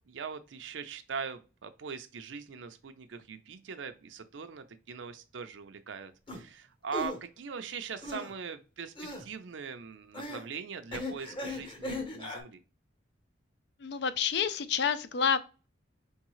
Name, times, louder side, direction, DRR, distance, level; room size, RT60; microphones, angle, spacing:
voice 1, 0.1-12.6, right 6 dB, 85° right, 0.5 m, -41 dB
sound 1, 6.3-6.4 6.9-7.2 8.0-8.3 9.0-9.2 10.1-10.5 10.9-12.4, left 2 dB, 25° left, 0.9 m, -37 dB
voice 2, 13.8-15.4, left 7 dB, 60° left, 0.4 m, -28 dB
4.7 x 3.6 x 3.0 m
head